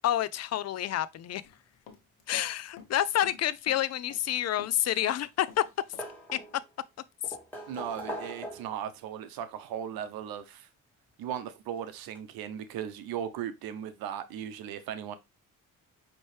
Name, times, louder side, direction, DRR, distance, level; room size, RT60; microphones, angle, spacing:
voice 1, 0.0-1.4 2.3-5.6 6.3-6.4, left 12 dB, 50° left, 0.5 m, -28 dB
Run, 1.4-2.5 2.8-4.3 4.6-6.1 6.4-6.5, left 6 dB, 85° left, 1.0 m, -51 dB
sound 1, 4.7-5.3 5.6-6.7 7.2-8.9 10.1-10.2 11.7-11.8 12.1-12.2, equal, 5° left, 1.9 m, -41 dB
voice 2, 7.7-10.7 11.2-15.1, right 9 dB, 90° right, 0.7 m, -37 dB
5.4 x 3.0 x 3.2 m
cardioid pair, 80°, 35 cm